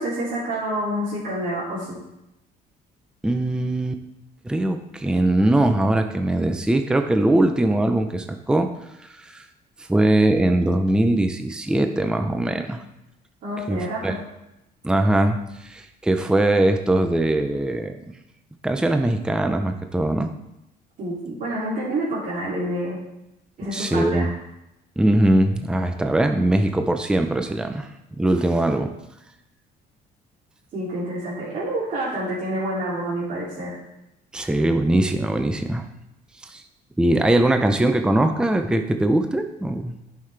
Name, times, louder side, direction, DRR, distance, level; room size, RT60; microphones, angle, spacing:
voice 1, 0.0-2.0 13.4-14.2 21.0-23.0 23.6-24.3 30.7-33.8, right 1 dB, 55° right, -8 dB, 2.6 m, -28 dB
voice 2, 3.2-4.0 4.4-8.7 9.0-9.4 9.8-12.8 13.7-14.1 14.8-18.0 18.6-20.3 23.7-24.3 25.0-27.9 28.2-28.9 34.3-35.9 36.4-36.6 37.0-40.0, right 1 dB, 5° right, 6 dB, 0.6 m, -21 dB
11.0 x 5.7 x 3.4 m, 0.88 s
cardioid pair, 110°, 17 cm